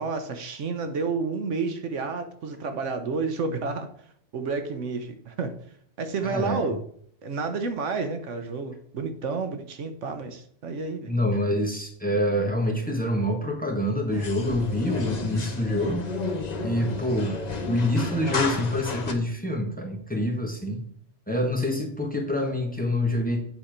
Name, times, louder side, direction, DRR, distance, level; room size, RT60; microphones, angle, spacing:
voice 1, 0.0-3.9 4.3-5.5 6.0-6.8 7.2-11.1, right 4 dB, 75° right, 8 dB, 1.2 m, -30 dB
voice 2, 6.2-6.6 11.1-16.0 16.6-17.4 17.7-20.8 21.3-23.4, left 1 dB, 5° left, 1 dB, 1.4 m, -26 dB
sound 1, 14.1-19.1, left 4 dB, 35° left, 1.0 m, -32 dB
8.9 x 4.3 x 5.1 m, 0.63 s
omnidirectional pair, 1.3 m